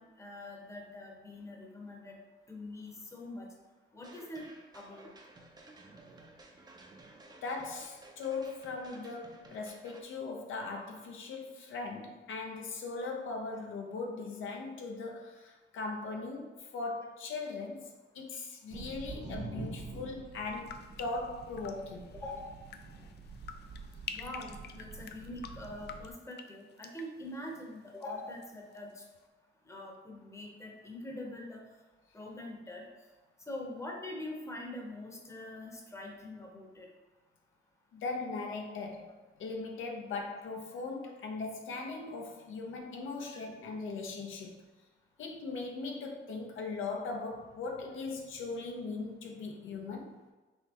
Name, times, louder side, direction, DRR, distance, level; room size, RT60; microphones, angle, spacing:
voice 1, 0.0-2.2 2.5-3.5 3.9-4.4 4.7-5.1 22.1-22.6 24.1-29.0 29.6-31.7 32.1-32.8 33.5-36.9 43.3-43.4, left 1 dB, 15° left, 0 dB, 0.9 m, -44 dB
sound 1, 4.0-10.0, right 2 dB, 20° right, 0.6 m, -55 dB
voice 2, 7.4-22.1 37.9-39.1 39.4-44.6 45.2-50.1, left 3 dB, 75° left, 1 dB, 0.8 m, -39 dB
sound 2, 18.7-26.1, right 3 dB, 55° right, 1.2 m, -46 dB
sound 3, 20.5-28.5 28.7-29.3, left 7 dB, 55° left, 0.4 m, -49 dB
5.7 x 3.2 x 2.9 m, 1.2 s
cardioid pair, 125°, 20 cm